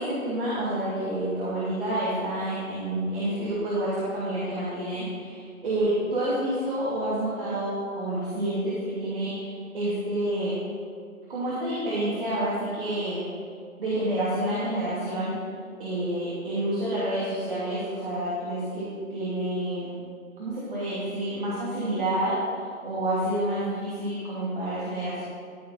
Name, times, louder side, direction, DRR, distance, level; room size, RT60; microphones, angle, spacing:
voice 1, 0.0-10.5 11.3-13.2 13.8-15.4 15.8-19.9 20.4-22.4 22.8-25.2, right 1 dB, 40° right, -9 dB, 2.8 m, -28 dB
15.0 x 5.3 x 5.8 m, 2.1 s
hypercardioid pair, 165°, 42 cm